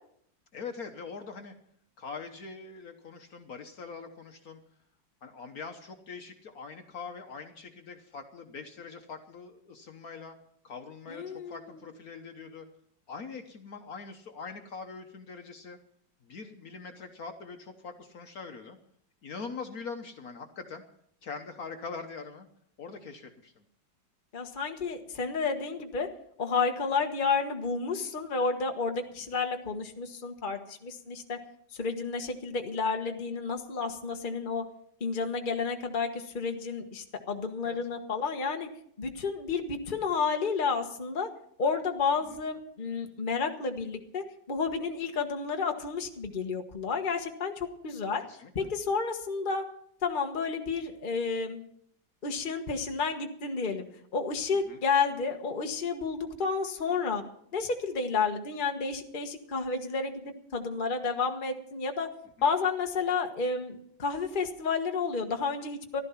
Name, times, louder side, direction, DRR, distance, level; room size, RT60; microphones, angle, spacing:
voice 1, 0.5-1.5 2.0-4.6 5.2-10.3 10.6-12.7 13.1-15.8 16.2-18.8 19.2-20.8 21.2-22.5 22.8-23.6 37.6-37.8 42.3-42.4 48.2-48.7 54.7-54.8 62.4-62.5, left 5 dB, 55° left, 5 dB, 1.5 m, -43 dB
voice 2, 11.1-11.6 24.3-26.1 26.4-31.4 31.7-34.6 35.0-38.7 39.0-41.3 41.6-48.2 48.5-49.7 50.0-51.6 52.2-53.9 54.1-57.2 57.5-62.1 62.4-66.0, left 5 dB, 30° left, 4 dB, 1.4 m, -31 dB
15.0 x 12.5 x 5.7 m, 0.66 s
omnidirectional pair, 1.9 m